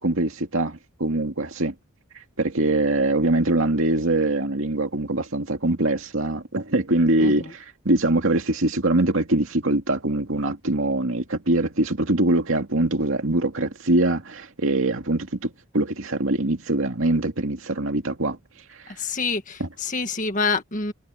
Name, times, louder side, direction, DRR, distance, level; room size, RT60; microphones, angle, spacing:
voice 1, 0.0-1.7 2.4-18.4 18.7-18.9 19.6-19.7, right 2 dB, 60° right, 2.4 m, -23 dB
voice 2, 19.0-20.9, left 4 dB, 35° left, 1.8 m, -27 dB
head